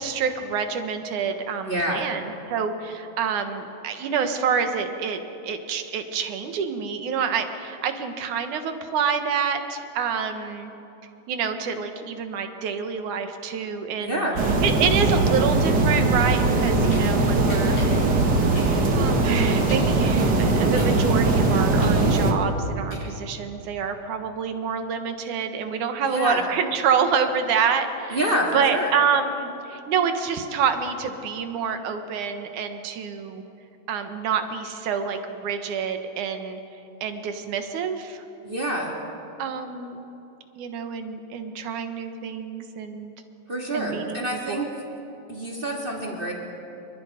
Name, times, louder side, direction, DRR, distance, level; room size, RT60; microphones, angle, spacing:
voice 1, 0.0-10.7 11.3-14.3 14.6-17.8 18.9-28.2 28.5-33.4 33.9-36.6 37.0-38.2 39.4-40.0 40.6-43.1 43.7-44.2 44.5-44.6, right 6 dB, 90° right, 7 dB, 2.9 m, -27 dB
voice 2, 1.6-2.1 14.0-14.4 26.0-26.4 28.1-28.9 38.4-38.9 43.5-44.7 45.3-46.3, right 1 dB, 20° right, -2 dB, 2.4 m, -27 dB
sound 1, 14.4-22.3, right 3 dB, 40° right, 2.1 m, -20 dB
sound 2, 16.9-17.0 17.5-20.0 20.4-23.4, left 1 dB, 70° left, 7.7 m, -42 dB
27.5 x 23.5 x 5.1 m, 3.0 s
omnidirectional pair, 3.4 m